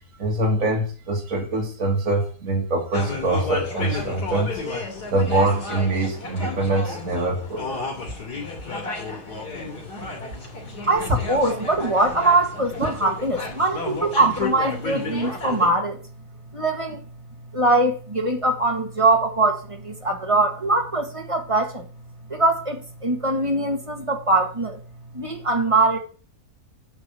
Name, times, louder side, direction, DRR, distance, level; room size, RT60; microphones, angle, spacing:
voice 1, 0.2-4.8 5.1-7.6, right 2 dB, 55° right, 2.3 m, -24 dB
sound 1, 2.9-15.7, left 3 dB, 90° left, 3.5 m, -32 dB
voice 2, 10.6-16.0 16.5-17.0 17.5-21.9 22.3-24.8 25.1-26.0, right 2 dB, 20° right, 1.6 m, -22 dB
8.8 x 5.5 x 7.5 m
omnidirectional pair, 1.7 m